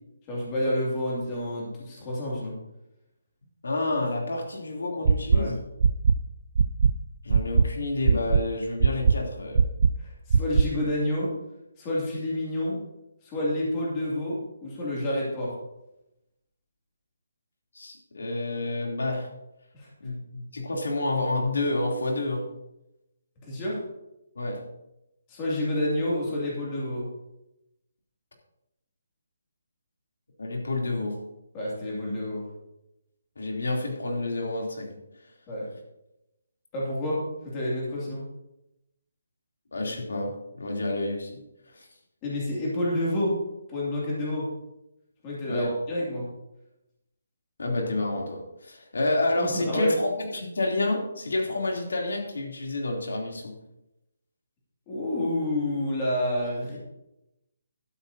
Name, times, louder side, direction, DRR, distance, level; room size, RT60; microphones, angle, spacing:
voice 1, 0.3-2.5 5.3-5.6 10.0-11.3 11.8-12.8 13.2-15.5 19.7-19.9 23.5-23.8 25.3-27.0 31.5-32.4 35.5-35.7 36.7-38.2 42.2-43.3 43.7-44.5 45.2-46.2 49.4-50.0 54.9-56.8, left 1 dB, 15° left, -5 dB, 2.5 m, -29 dB
voice 2, 3.6-5.6 7.2-9.7 17.7-19.3 20.0-22.4 24.3-24.6 30.4-31.2 33.4-35.0 39.7-41.4 41.7-41.9 45.4-45.7 47.6-53.5, left 2 dB, 90° left, 0 dB, 3.1 m, -29 dB
sound 1, 5.1-5.4 5.8-6.1 6.6-6.9 7.3-7.6 8.1-8.4 8.8-9.1 9.6-9.9 10.3-10.6, right 6 dB, 35° right, 0.3 m, -18 dB
12.5 x 12.0 x 2.8 m, 0.91 s
hypercardioid pair, 180°, 0 cm